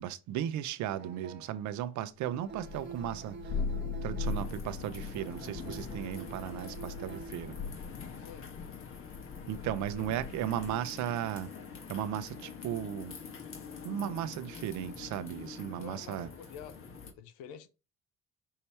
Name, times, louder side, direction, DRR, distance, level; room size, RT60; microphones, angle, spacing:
voice 1, 0.0-3.6 4.0-7.5 9.5-11.5 11.9-13.2 13.8-16.3, right 11 dB, 70° right, 0.6 m, -36 dB
sound 1, 0.8-1.8 2.2-4.7 5.1-7.7 8.1-8.3, right 6 dB, 35° right, 1.2 m, -47 dB
Thunder, 2.5-10.9, left 5 dB, 30° left, 0.5 m, -40 dB
sound 2, 4.2-17.1, left 6 dB, 45° left, 1.3 m, -46 dB
voice 2, 8.2-8.5 15.7-16.9 17.2-17.7, left 8 dB, 85° left, 0.7 m, -48 dB
5.6 x 2.8 x 3.2 m
supercardioid pair, 90°, 30 cm